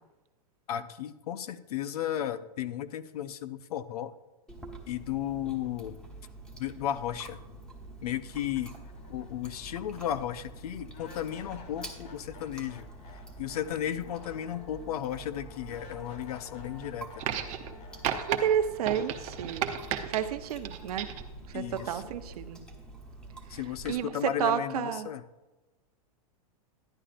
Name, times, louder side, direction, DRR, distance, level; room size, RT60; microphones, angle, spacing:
voice 1, 0.7-4.1 4.9-6.0 6.6-7.4 8.0-8.7 9.1-17.2 21.5-22.0 23.5-25.2, left 11 dB, 75° left, 14 dB, 0.6 m, -34 dB
Chewing mastication, 4.5-23.9, right 2 dB, 5° left, 1.0 m, -47 dB
sound 1, 7.8-7.9 8.3-21.4, left 5 dB, 35° left, 1.0 m, -53 dB
sound 2, 17.2-17.7 18.0-18.4 18.8-20.2 20.7-21.3 22.3-22.4, right 9 dB, 40° right, 0.8 m, -33 dB
voice 2, 18.3-19.7 20.1-21.1 21.5-22.6 23.5-23.6 23.9-25.1, right 9 dB, 75° right, 9 dB, 0.7 m, -30 dB
12.0 x 9.9 x 2.5 m, 1.1 s
hypercardioid pair, 135°, 19 cm